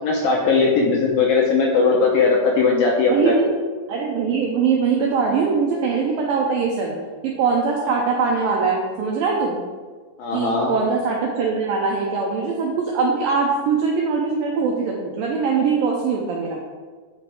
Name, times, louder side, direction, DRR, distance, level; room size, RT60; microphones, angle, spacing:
voice 1, 0.0-3.3 10.2-10.7, left 4 dB, 75° left, -1 dB, 2.2 m, -18 dB
voice 2, 3.1-3.5 3.9-6.9 7.4-9.6 10.3-16.6, right 5 dB, 85° right, -1 dB, 2.0 m, -22 dB
9.0 x 5.2 x 4.8 m, 1.5 s
omnidirectional pair, 5.0 m